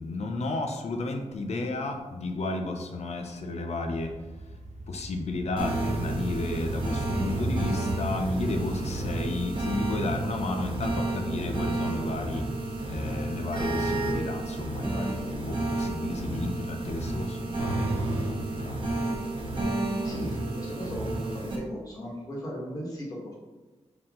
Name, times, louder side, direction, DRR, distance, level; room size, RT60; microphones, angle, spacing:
voice 1, 0.0-4.1 4.9-19.2, left 2 dB, 70° left, 4 dB, 0.7 m, -33 dB
sound 1, 3.8-19.7, right 1 dB, 85° right, 0.8 m, -41 dB
sound 2, 5.6-21.6, right 2 dB, 45° right, 1.1 m, -31 dB
voice 2, 20.0-23.4, equal, 30° left, -4 dB, 1.8 m, -36 dB
5.9 x 4.4 x 3.8 m, 1.2 s
wide cardioid pair, 170°, 12 cm